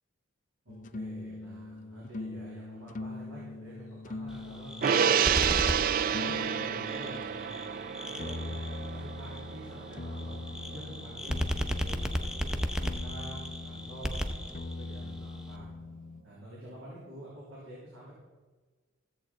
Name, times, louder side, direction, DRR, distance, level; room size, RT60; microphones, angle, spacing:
voice 1, 0.6-5.6 6.0-8.6 8.9-15.7 16.2-18.1, right 1 dB, 70° right, -6 dB, 3.2 m, -48 dB
sound 1, 0.7-7.3 8.2-16.2, left 2 dB, 40° left, 0.5 m, -42 dB
sound 2, 4.3-15.6, equal, 5° right, 0.6 m, -36 dB
Gong, 4.8-11.4 11.8-11.9, right 8 dB, 45° right, 0.3 m, -30 dB
15.0 x 7.8 x 4.4 m, 1.3 s
head